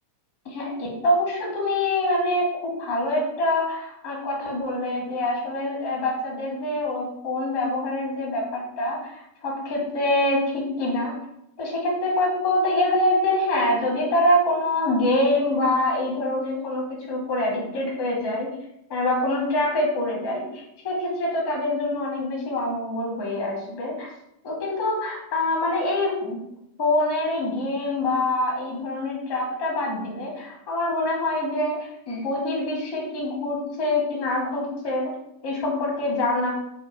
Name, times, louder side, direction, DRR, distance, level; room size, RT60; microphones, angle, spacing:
voice 1, 0.4-11.1 11.6-18.5 18.9-24.1 24.4-26.4 26.8-35.1 35.4-36.5, left 1 dB, 50° left, -2 dB, 1.5 m, -25 dB
4.7 x 2.3 x 3.4 m, 0.80 s
figure-of-eight pair, 90°, 0 cm